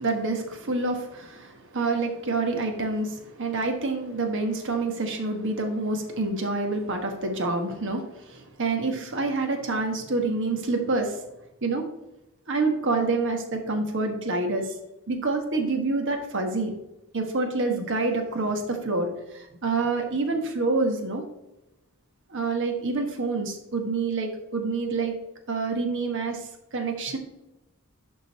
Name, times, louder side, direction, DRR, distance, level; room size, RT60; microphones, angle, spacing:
voice 1, 0.0-11.2 11.6-11.8 12.5-14.7 15.1-16.7 17.1-21.2 22.3-25.1 25.5-27.2, right 3 dB, 60° right, 4 dB, 1.3 m, -27 dB
11.0 x 3.9 x 4.1 m, 0.93 s
head